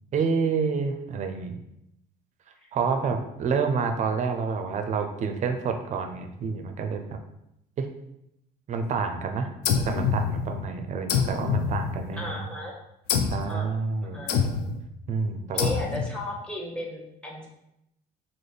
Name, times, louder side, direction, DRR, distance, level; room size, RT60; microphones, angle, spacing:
voice 1, 0.1-1.6 2.7-7.2 7.8-7.9 8.7-9.5 9.8-12.4 13.3-14.2 15.1-15.7, right 5 dB, 45° right, 5 dB, 0.4 m, -28 dB
voice 2, 2.6-3.1 12.2-12.7 13.5-13.7 14.0-14.4 15.5-17.5, left 1 dB, 5° left, -1 dB, 0.8 m, -35 dB
sound 1, 9.6-10.7 11.1-12.4 13.1-13.5 14.3-14.8 15.6-16.2, left 6 dB, 85° left, 0.4 m, -26 dB
3.2 x 2.1 x 4.0 m, 0.83 s
cardioid pair, 110°, 17 cm